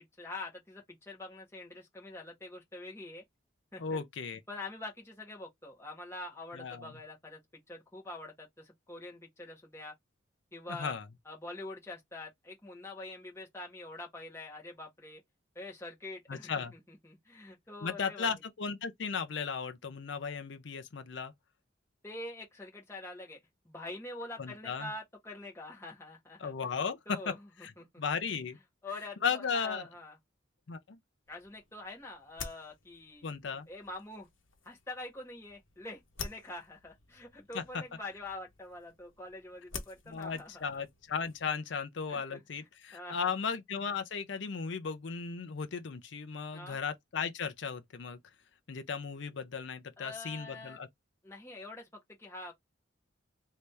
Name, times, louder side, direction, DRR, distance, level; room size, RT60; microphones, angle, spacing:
voice 1, 0.2-3.2 3.7-4.0 4.5-7.4 7.7-9.9 10.5-10.9 11.2-15.2 15.5-18.3 22.0-23.4 23.6-26.5 27.1-27.4 27.8-28.0 28.8-30.1 31.3-33.3 33.7-34.3 34.6-40.8 42.1-42.4 42.9-43.3 46.5-46.8 50.0-50.8 51.2-52.5, left 2 dB, 15° left, 1.3 m, -45 dB
voice 2, 3.8-4.4 6.5-6.9 10.7-11.0 16.3-16.7 17.8-21.3 24.4-24.9 26.4-27.3 27.6-27.7 28.0-28.6 29.2-29.9 30.7-31.0 33.2-33.7 37.5-37.8 40.1-48.2 48.7-50.9, left 6 dB, 70° left, 0.5 m, -36 dB
sound 1, 31.2-41.6, left 5 dB, 90° left, 1.0 m, -50 dB
3.2 x 2.8 x 3.3 m
head